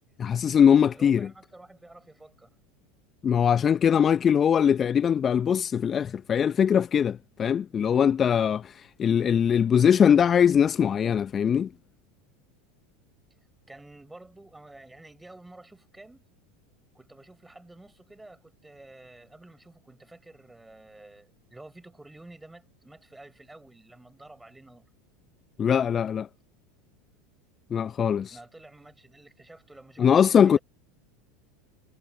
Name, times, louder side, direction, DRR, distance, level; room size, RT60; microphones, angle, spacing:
voice 1, 0.2-1.3 3.2-11.7 25.6-26.3 27.7-28.4 30.0-30.6, left 8 dB, 30° left, 0.6 m, -21 dB
voice 2, 0.9-2.5 13.7-16.2 16.9-24.9 28.3-30.6, right 2 dB, 10° right, 6.8 m, -50 dB
figure-of-eight pair, 80°, 0 cm